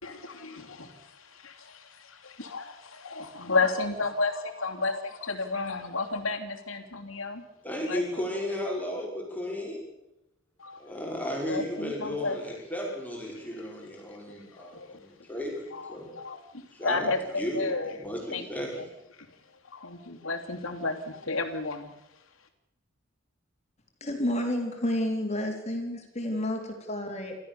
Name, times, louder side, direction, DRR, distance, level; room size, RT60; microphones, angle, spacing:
voice 1, 0.0-1.5 2.2-7.4 7.9-8.0 10.6-10.8 11.5-12.4 13.3-13.5 14.5-15.1 15.7-18.0 18.3-18.5 18.8-18.9 19.2-19.4 19.6-21.9, left 3 dB, 80° left, 4 dB, 3.0 m, -32 dB
voice 2, 7.6-9.9 10.8-16.1 16.7-18.7, left 1 dB, 10° left, -1 dB, 5.4 m, -34 dB
voice 3, 24.0-27.4, left 1 dB, 35° left, 2 dB, 3.8 m, -30 dB
28.5 x 14.0 x 7.0 m, 0.87 s
head